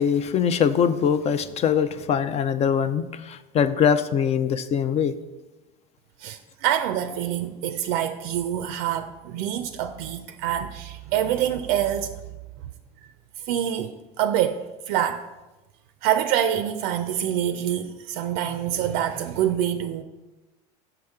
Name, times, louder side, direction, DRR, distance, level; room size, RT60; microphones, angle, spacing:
voice 1, 0.0-5.1, left 7 dB, 35° left, 0.4 m, -22 dB
voice 2, 6.2-12.2 13.4-15.3 16.0-20.0, right 10 dB, 65° right, 0.4 m, -26 dB
6.4 x 5.7 x 3.5 m
supercardioid pair, 95°, 20 cm